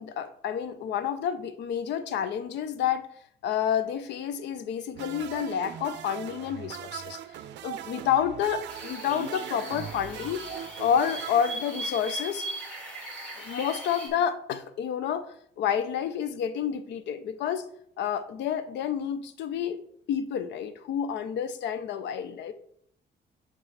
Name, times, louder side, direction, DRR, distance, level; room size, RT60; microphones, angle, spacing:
voice 1, 0.0-3.1 3.4-7.2 7.6-10.4 10.8-12.5 13.4-17.7 18.0-19.8 20.1-22.5, left 8 dB, 80° left, 12 dB, 0.6 m, -29 dB
sound 1, 4.9-12.2, right 11 dB, 80° right, 0.5 m, -40 dB
sound 2, 8.7-14.1, right 1 dB, 5° left, 1.8 m, -39 dB
5.1 x 3.7 x 5.6 m, 0.67 s
cardioid pair, 150°, 18 cm